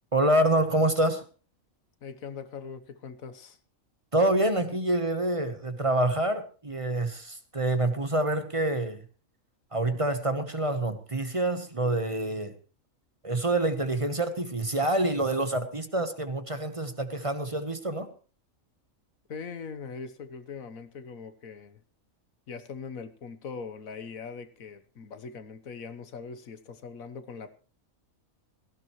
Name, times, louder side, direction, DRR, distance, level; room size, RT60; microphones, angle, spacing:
voice 1, 0.1-1.2 4.1-9.0 9.7-12.5 13.2-18.1, right 1 dB, 25° right, 9 dB, 1.1 m, -27 dB
voice 2, 2.0-3.6 19.3-21.8 22.5-27.6, left 5 dB, 90° left, 10 dB, 1.6 m, -41 dB
17.5 x 15.0 x 3.1 m, 0.37 s
omnidirectional pair, 1.4 m